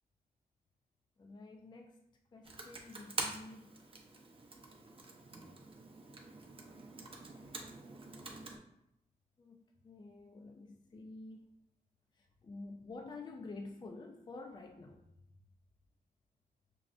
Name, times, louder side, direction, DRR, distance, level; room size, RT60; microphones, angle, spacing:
voice 1, 1.2-2.1 2.3-3.8 5.5-6.2 6.4-6.8 9.4-11.5 12.1-15.4, left 3 dB, 25° left, 4 dB, 0.4 m, -50 dB
Computer keyboard, 2.4-8.6, right 3 dB, 35° right, 0.7 m, -46 dB
6.1 x 2.1 x 2.5 m, 0.80 s
cardioid pair, 75°, 16 cm